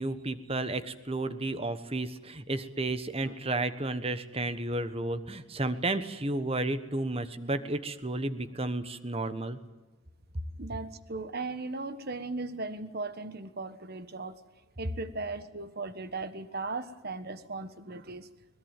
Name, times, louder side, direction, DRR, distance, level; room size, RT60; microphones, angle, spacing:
voice 1, 0.0-9.6, right 2 dB, 25° right, 11 dB, 1.2 m, -32 dB
voice 2, 10.6-14.4 14.8-18.3, right 3 dB, 45° right, 12 dB, 1.3 m, -37 dB
21.5 x 21.0 x 9.2 m, 1.2 s
head